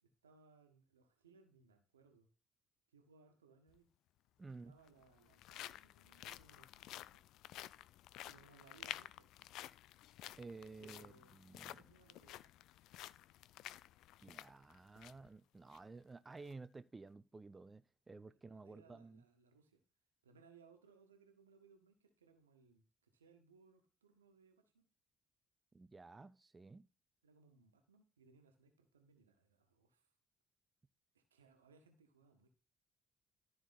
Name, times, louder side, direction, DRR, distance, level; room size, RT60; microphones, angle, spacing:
voice 1, 0.0-2.3 2.9-3.9 4.5-7.2 8.2-9.5 10.8-11.3 11.6-12.5 18.5-19.8 20.2-24.9 27.2-30.1 31.1-32.5, right 4 dB, 85° right, 1.5 m, -67 dB
sound 1, 3.7-3.8 4.7-15.3 15.7-15.8 16.3-16.5, left 14 dB, 60° left, 0.4 m, -52 dB
voice 2, 4.4-4.8 10.4-11.8 14.2-19.2 25.7-26.9, right 3 dB, 25° right, 0.6 m, -54 dB
13.5 x 4.8 x 4.1 m
figure-of-eight pair, 50°, 0 cm